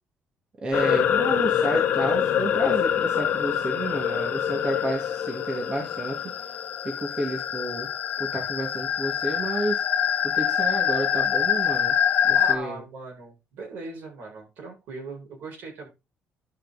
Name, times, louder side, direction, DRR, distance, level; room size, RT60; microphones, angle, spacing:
voice 1, 0.6-6.2 6.8-7.9 8.2-9.8 10.2-12.0 12.3-12.8, right 1 dB, 25° right, 0 dB, 2.6 m, -30 dB
sound 1, 0.7-12.6, left 9 dB, 55° left, 1.3 m, -25 dB
voice 2, 12.3-15.9, right 3 dB, 65° right, 0 dB, 7.5 m, -39 dB
12.0 x 6.3 x 4.2 m, 0.26 s
cardioid pair, 155°, 4 cm